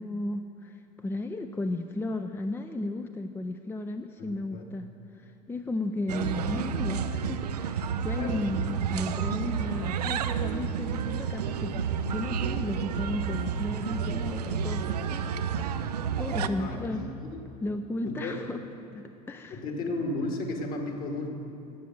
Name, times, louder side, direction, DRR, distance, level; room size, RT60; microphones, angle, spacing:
voice 1, 0.0-11.8 12.1-15.9 16.2-17.0 17.6-18.6 18.9-19.6, left 2 dB, 10° left, 7 dB, 0.5 m, -34 dB
voice 2, 4.2-4.6 8.2-8.4 16.3-17.4 18.0-18.4 19.5-21.3, left 2 dB, 50° left, 2 dB, 2.3 m, -34 dB
sound 1, 6.1-16.5, right 7 dB, 80° right, 0.6 m, -30 dB
12.5 x 8.4 x 7.9 m, 2.8 s
hypercardioid pair, 80°, 20 cm